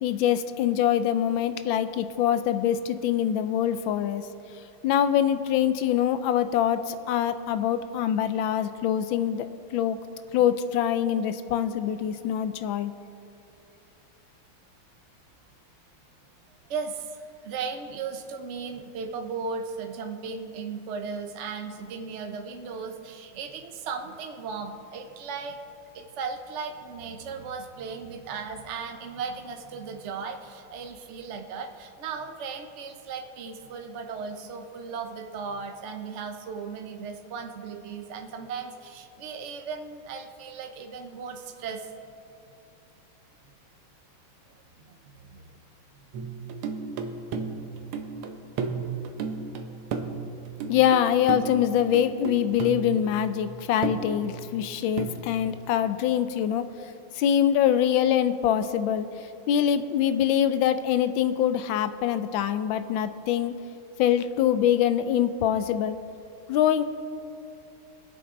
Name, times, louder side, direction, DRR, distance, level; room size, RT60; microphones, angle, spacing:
voice 1, 0.0-4.2 4.8-9.5 9.7-10.0 10.3-12.9 50.7-56.7 57.2-59.1 59.5-63.5 64.0-66.0 66.5-66.8, left 10 dB, 75° left, 11 dB, 1.3 m, -24 dB
voice 2, 16.7-25.6 25.9-41.9 44.8-45.5 46.0-46.3, right 5 dB, 55° right, 4 dB, 0.7 m, -36 dB
sound 1, 46.1-55.4, right 5 dB, 85° right, 1.7 m, -34 dB
23.5 x 8.6 x 3.8 m, 2.7 s
omnidirectional pair, 2.4 m